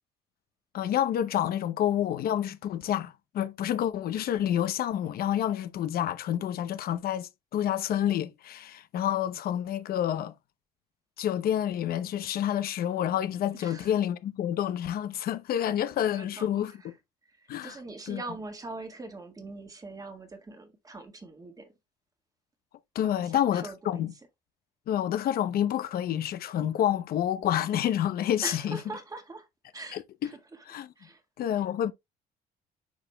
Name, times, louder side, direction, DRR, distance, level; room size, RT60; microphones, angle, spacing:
voice 1, 0.7-10.3 11.2-16.7 17.5-17.8 18.1-18.2 22.9-24.1 24.9-28.8 29.9-30.0 30.7-30.9 31.4-31.9, left 10 dB, 60° left, 0.7 m, -28 dB
voice 2, 13.5-13.9 16.1-16.9 17.3-21.7 23.0-24.1 28.4-29.5 29.7-30.6 31.0-31.2, right 3 dB, 20° right, 1.6 m, -42 dB
9.0 x 4.9 x 2.2 m
cardioid pair, 110°, 17 cm